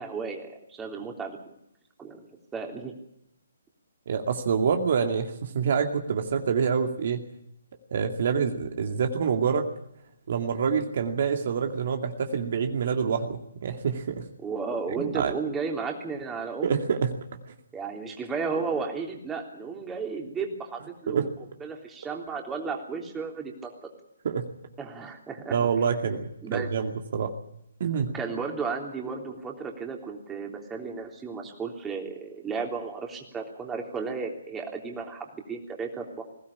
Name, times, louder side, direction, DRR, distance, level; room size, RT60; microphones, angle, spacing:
voice 1, 0.0-1.4 2.0-2.3 2.5-2.9 14.4-16.8 17.7-21.3 21.6-23.7 24.8-25.6 26.4-26.7 27.9-36.2, right 5 dB, 10° right, 1 dB, 3.4 m, -34 dB
voice 2, 4.1-7.2 7.9-9.6 10.3-14.2 14.9-15.3 16.6-17.1 21.1-21.3 24.2-24.5 25.5-27.3 27.8-28.1, right 6 dB, 50° right, 5 dB, 2.4 m, -26 dB
21.5 x 17.0 x 8.6 m, 0.77 s
figure-of-eight pair, 140°, 0 cm